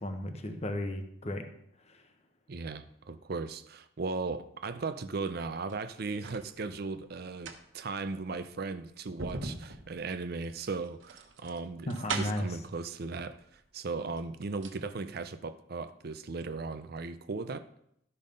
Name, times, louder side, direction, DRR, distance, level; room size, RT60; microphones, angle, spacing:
voice 1, 0.0-1.4 1.9-2.0 11.9-12.4, left 1 dB, 35° left, 1.0 m, -34 dB
voice 2, 2.5-17.7, right 4 dB, 50° right, 0.5 m, -37 dB
sound 1, 5.5-6.5 7.2-12.6 13.6-13.7 14.0-14.8 15.1-15.2, right 4 dB, 75° right, 1.2 m, -41 dB
12.5 x 5.5 x 5.3 m
head